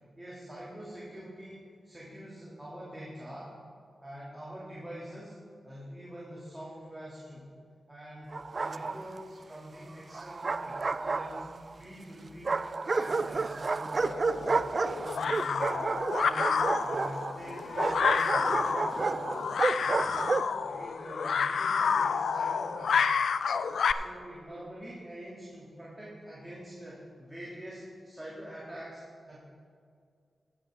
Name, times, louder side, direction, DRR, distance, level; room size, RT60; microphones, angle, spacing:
voice 1, 0.1-3.5 4.0-5.4 5.6-7.5 7.9-11.4 11.8-14.6 14.9-19.5 19.8-23.3 23.9-29.4, equal, 15° right, -7 dB, 2.8 m, -45 dB
Bark, 8.3-9.2 10.1-11.7 12.4-20.6, right 3 dB, 50° right, 0.3 m, -31 dB
sound 1, 14.0-23.9, left 6 dB, 85° left, 0.4 m, -29 dB
16.5 x 8.5 x 3.7 m, 2.2 s
cardioid pair, 70°, 0 cm